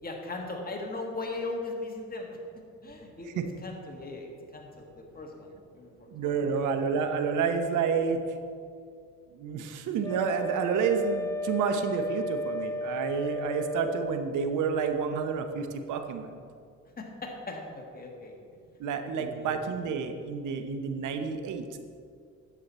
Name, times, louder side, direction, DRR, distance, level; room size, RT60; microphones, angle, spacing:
voice 1, 0.0-2.4 2.8-4.9 5.1-6.6 17.0-18.4 19.2-19.6, left 2 dB, 30° left, 1 dB, 1.7 m, -39 dB
voice 2, 6.1-8.4 9.3-16.3 18.8-21.7, right 6 dB, 80° right, 7 dB, 0.9 m, -29 dB
Wind instrument woodwind instrument, 10.0-14.3, left 2 dB, 10° left, 0.3 m, -34 dB
10.0 x 7.6 x 4.2 m, 2.3 s
cardioid pair, 90°, 30 cm